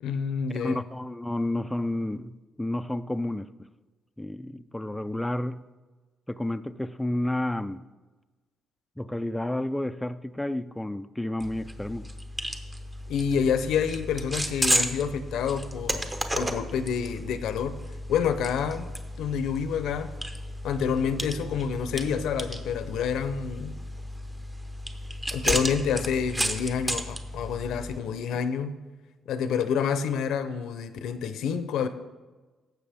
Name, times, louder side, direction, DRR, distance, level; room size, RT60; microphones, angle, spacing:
voice 1, 0.0-0.8 13.1-16.1 16.3-17.8 18.1-18.9 19.2-20.1 20.6-23.8 25.3-28.8 29.3-31.9, left 7 dB, 80° left, 0.6 m, -28 dB
voice 2, 0.6-3.7 4.2-5.7 6.3-7.8 9.0-12.1, left 1 dB, 5° left, 0.3 m, -31 dB
sound 1, 11.4-28.0, equal, 15° right, 0.9 m, -33 dB
15.5 x 6.1 x 3.5 m
cardioid pair, 90°, 0 cm